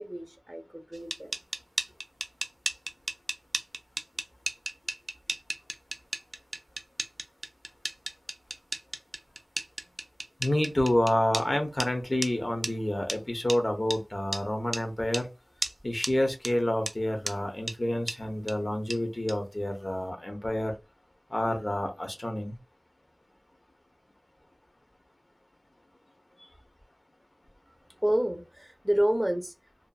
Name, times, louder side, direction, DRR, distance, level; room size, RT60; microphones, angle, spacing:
voice 1, 0.0-1.3 27.9-29.5, right 1 dB, 20° right, 0.7 m, -29 dB
sound 1, 0.9-11.5 11.8-11.9 12.2-12.3 12.6-12.7 13.1-13.2 13.5-13.6 13.9-14.0 14.3-14.4 14.7-14.8 15.1-15.3 15.6-15.7 16.0-16.1 16.4-16.5 16.9-17.0 17.3-17.4 17.7-17.8 18.1-18.2 18.5-18.6 18.9-19.0 19.3-19.4, right 2 dB, 80° right, 0.3 m, -33 dB
voice 2, 10.4-15.3 15.8-20.7 21.3-22.6, left 1 dB, 50° left, 0.8 m, -28 dB
2.6 x 2.4 x 2.3 m
wide cardioid pair, 45°, 0 cm